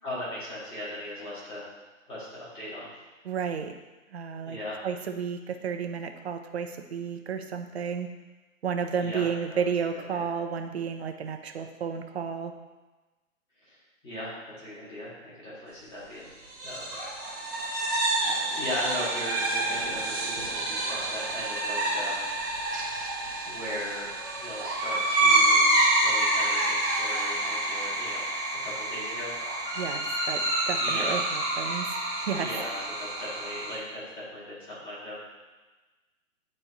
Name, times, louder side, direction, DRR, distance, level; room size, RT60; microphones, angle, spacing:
voice 1, 0.0-1.7 2.1-2.9 4.4-4.9 9.0-9.6 9.9-10.2 13.6-13.8 14.0-16.3 16.6-16.9 17.4-17.5 18.2-22.7 23.4-24.1 24.4-28.3 28.6-29.3 30.7-31.2 32.3-35.2, left 1 dB, 10° left, -10 dB, 2.1 m, -38 dB
voice 2, 3.2-3.7 4.1-4.6 4.8-8.1 8.6-12.5 29.8-32.5, right 6 dB, 50° right, 6 dB, 0.7 m, -32 dB
sound 1, 16.5-33.8, right 2 dB, 5° right, 0.8 m, -28 dB
9.4 x 4.3 x 3.0 m, 1.2 s
hypercardioid pair, 155°, 42 cm